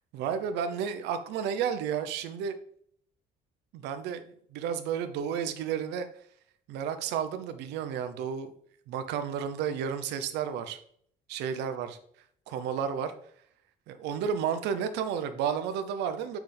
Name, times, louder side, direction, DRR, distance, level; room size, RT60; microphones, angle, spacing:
voice 1, 0.1-2.5 3.7-6.1 6.7-8.5 8.9-10.8 11.3-12.0 12.5-13.1 13.9-16.4, right 7 dB, 90° right, 9 dB, 0.8 m, -32 dB
7.6 x 6.0 x 3.5 m, 0.63 s
cardioid pair, 110°, 17 cm